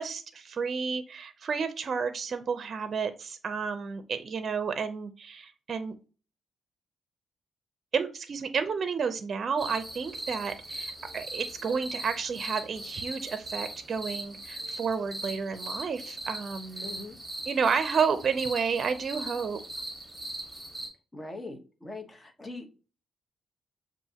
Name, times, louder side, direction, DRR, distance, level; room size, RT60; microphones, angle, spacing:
voice 1, 0.0-6.0 7.9-16.9 17.5-19.6, right 5 dB, 50° right, 10 dB, 0.5 m, -31 dB
sound 1, 9.6-20.9, right 1 dB, 10° right, 1.7 m, -39 dB
voice 2, 16.8-17.2 21.1-22.8, left 2 dB, 25° left, 5 dB, 0.9 m, -41 dB
6.7 x 2.5 x 2.8 m, 0.35 s
cardioid pair, 90°, 0 cm